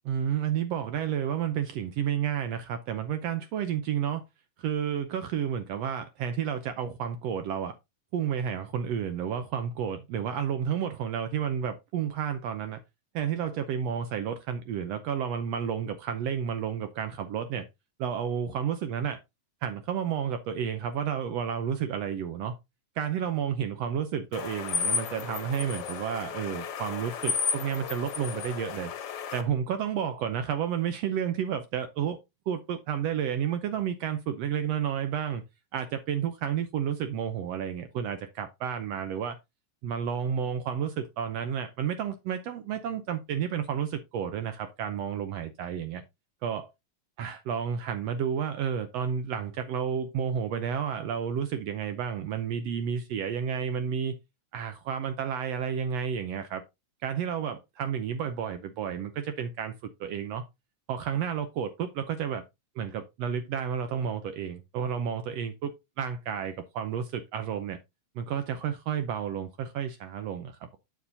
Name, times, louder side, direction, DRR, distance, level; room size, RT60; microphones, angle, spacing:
voice 1, 0.0-4.2 4.6-7.7 8.1-12.8 13.1-17.7 18.0-19.2 19.6-22.6 23.0-28.9 29.3-32.2 32.5-35.4 35.7-39.4 39.8-46.0 46.4-46.7 47.2-54.1 54.5-56.6 57.0-60.4 60.9-62.4 62.8-67.8 68.2-70.8, right 8 dB, 75° right, 1.5 m, -31 dB
sound 1, 24.3-29.4, left 6 dB, 60° left, 1.7 m, -33 dB
8.2 x 7.1 x 2.7 m
omnidirectional pair, 3.6 m